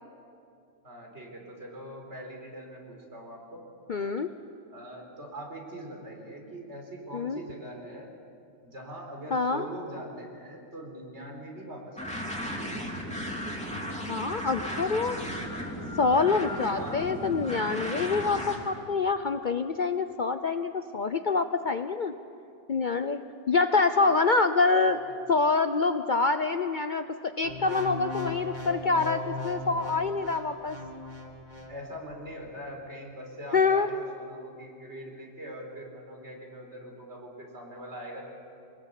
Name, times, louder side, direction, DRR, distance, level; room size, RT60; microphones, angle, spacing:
voice 1, 0.8-3.6 4.7-8.1 8.6-12.4 16.7-17.1 23.8-23.9 25.1-25.2 31.7-38.2, right 1 dB, 60° right, 0 dB, 4.6 m, -42 dB
voice 2, 3.9-4.3 7.1-7.4 9.3-9.7 14.1-15.2 16.0-22.1 22.7-23.2 23.5-25.0 25.3-30.8 33.5-33.9, left 4 dB, 45° left, 9 dB, 0.7 m, -26 dB
sound 1, 12.0-18.6, equal, 5° left, 2.9 m, -35 dB
sound 2, 27.4-31.8 32.3-32.5, left 1 dB, 35° right, 2.5 m, -38 dB
24.0 x 20.0 x 8.3 m, 2.5 s
omnidirectional pair, 1.3 m